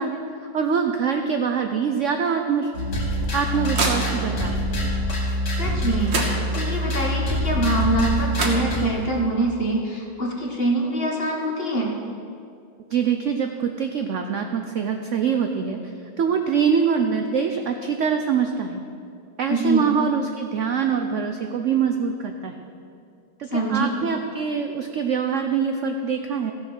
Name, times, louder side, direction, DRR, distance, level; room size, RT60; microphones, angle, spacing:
voice 1, 0.0-2.7 3.3-4.7 12.9-15.8 16.2-18.8 19.4-22.5 23.4-26.5, right 6 dB, 70° right, 5 dB, 0.7 m, -24 dB
sound 1, 2.7-8.9, equal, 65° left, 2.6 m, -25 dB
sound 2, 2.9-4.5 5.7-5.8 6.1-6.9 8.0-8.1 8.3-9.2, right 2 dB, 40° right, 1.4 m, -29 dB
voice 2, 5.5-6.1 6.5-12.0 19.5-19.9 23.5-23.9, right 2 dB, 35° left, -1 dB, 1.7 m, -24 dB
15.5 x 7.3 x 6.3 m, 2.5 s
omnidirectional pair, 2.0 m